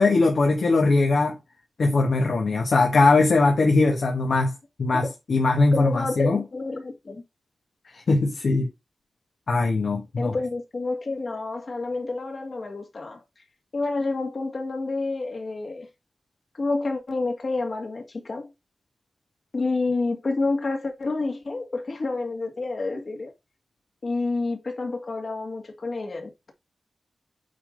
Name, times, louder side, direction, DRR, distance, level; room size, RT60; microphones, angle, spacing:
voice 1, 0.0-1.3 1.8-4.5 4.8-6.4 8.1-8.7 9.5-10.4, left 3 dB, 80° left, 1.6 m, -20 dB
voice 2, 5.7-7.2 10.2-13.2 13.7-15.9 16.5-18.5 19.5-23.3 24.0-26.5, left 3 dB, 60° left, 2.1 m, -29 dB
8.5 x 3.8 x 3.9 m
wide cardioid pair, 70°, 0 cm